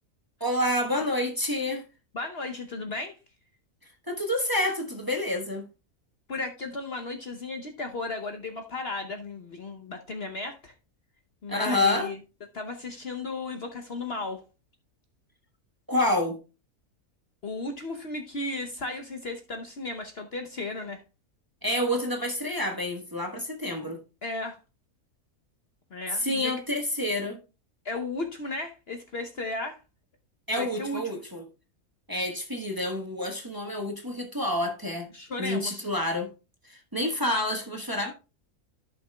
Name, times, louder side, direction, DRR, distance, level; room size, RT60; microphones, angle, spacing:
voice 1, 0.4-1.8 4.1-5.6 11.5-12.1 15.9-16.4 21.6-24.0 26.1-27.4 30.5-31.5 32.1-35.1 35.4-36.3 36.7-38.1, left 1 dB, 15° right, 1.2 m, -28 dB
voice 2, 2.1-3.2 6.3-10.7 11.4-12.2 12.5-14.4 17.4-21.0 24.2-24.6 25.9-26.5 27.8-29.8 30.6-31.0 35.1-35.9, left 3 dB, 50° left, 1.0 m, -35 dB
14.0 x 5.9 x 2.3 m
omnidirectional pair, 1.6 m